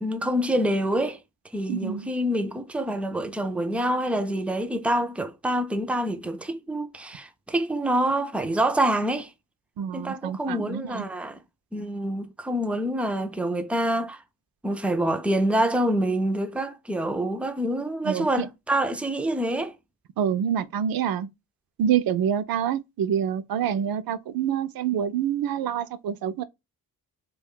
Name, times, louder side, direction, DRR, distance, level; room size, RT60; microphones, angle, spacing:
voice 1, 0.0-1.2 1.5-9.3 9.9-11.4 11.7-14.2 14.6-19.7, right 1 dB, 5° right, 0.3 m, -26 dB
voice 2, 1.7-2.1 9.8-11.0 18.0-18.5 20.2-21.3 21.8-26.4, right 9 dB, 65° right, 0.5 m, -27 dB
2.4 x 2.3 x 3.5 m
cardioid pair, 90°, 38 cm